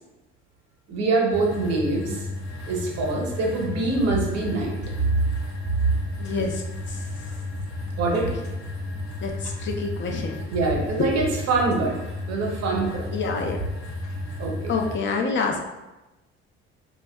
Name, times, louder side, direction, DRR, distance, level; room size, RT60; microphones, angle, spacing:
voice 1, 0.9-2.2 2.6-4.7 8.0-8.3 10.5-11.9 12.3-13.0 14.4-14.7, right 3 dB, 60° right, -1 dB, 0.8 m, -24 dB
sound 1, 1.3-15.0, left 2 dB, 75° left, 0.7 m, -33 dB
voice 2, 6.2-7.4 8.3-8.4 9.2-10.4 13.1-13.6 14.7-15.6, left 4 dB, 40° left, 1 dB, 0.5 m, -28 dB
2.6 x 2.2 x 2.2 m, 1.0 s
hypercardioid pair, 65°, 29 cm